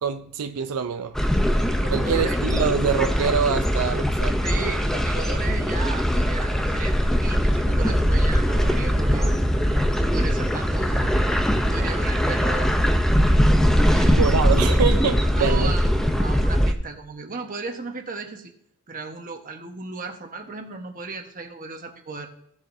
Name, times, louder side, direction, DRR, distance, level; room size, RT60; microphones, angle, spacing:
voice 1, 0.0-1.1 1.9-4.4 14.2-15.7, right 6 dB, 85° right, 0.5 m, -25 dB
sound 1, 1.1-16.7, equal, ahead, 0.6 m, -21 dB
voice 2, 1.8-2.4 4.4-9.3 9.9-11.2 11.7-12.8 13.9-14.4 15.2-18.5 18.9-22.3, right 4 dB, 40° right, 1.2 m, -35 dB
sound 2, 6.4-14.0, equal, 20° right, 1.0 m, -41 dB
16.0 x 7.2 x 2.7 m
head